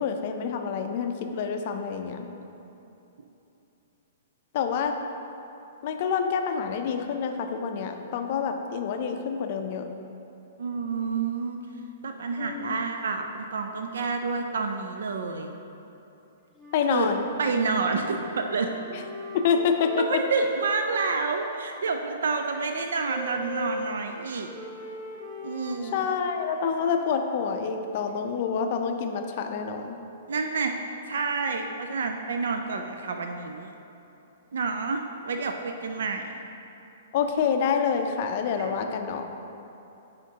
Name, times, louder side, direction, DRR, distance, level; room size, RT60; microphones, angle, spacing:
voice 1, 0.0-2.3 4.5-4.9 5.8-9.9 12.4-12.8 16.7-17.2 19.3-20.2 25.9-30.0 37.1-39.2, left 6 dB, 45° left, 6 dB, 0.4 m, -27 dB
voice 2, 10.6-11.6 12.0-15.5 16.9-17.1 17.4-18.7 20.0-24.5 25.4-26.0 30.3-30.8 31.1-33.7 34.5-36.2 38.6-38.9, right 4 dB, 85° right, 5 dB, 0.4 m, -29 dB
Wind instrument woodwind instrument, 16.5-21.6 22.3-27.2, equal, ahead, 0.7 m, -40 dB
8.1 x 5.0 x 2.8 m, 2.9 s
hypercardioid pair, 160°, 0 cm